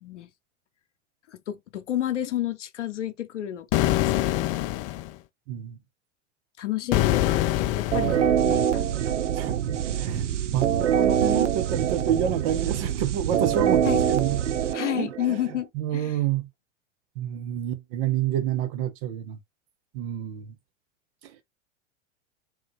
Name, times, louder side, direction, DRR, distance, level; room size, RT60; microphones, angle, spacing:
voice 1, 1.3-4.5 6.6-9.2 13.8-14.0 14.7-16.2, left 12 dB, 75° left, 0.8 m, -31 dB
sound 1, 3.7-5.1 6.9-8.3, left 15 dB, 35° left, 0.4 m, -24 dB
voice 2, 5.5-5.8 9.3-13.8 14.1-15.1 15.7-16.5 17.2-19.4 19.9-20.5, right 10 dB, 50° right, 1.2 m, -28 dB
sound 2, 7.9-15.6, right 9 dB, 80° right, 0.7 m, -24 dB
3.7 x 3.2 x 3.3 m
hypercardioid pair, 95°, 36 cm